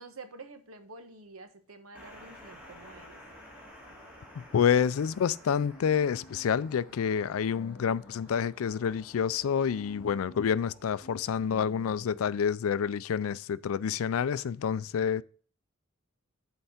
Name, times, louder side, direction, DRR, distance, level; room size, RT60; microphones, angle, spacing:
voice 1, 0.0-3.2, right 3 dB, 85° right, 1.1 m, -48 dB
sound 1, 1.9-12.4, equal, 10° right, 2.5 m, -53 dB
voice 2, 4.4-15.2, left 7 dB, 75° left, 0.4 m, -28 dB
sound 2, 5.0-8.4 8.6-12.5, left 2 dB, 30° left, 0.7 m, -53 dB
7.9 x 4.7 x 5.7 m
head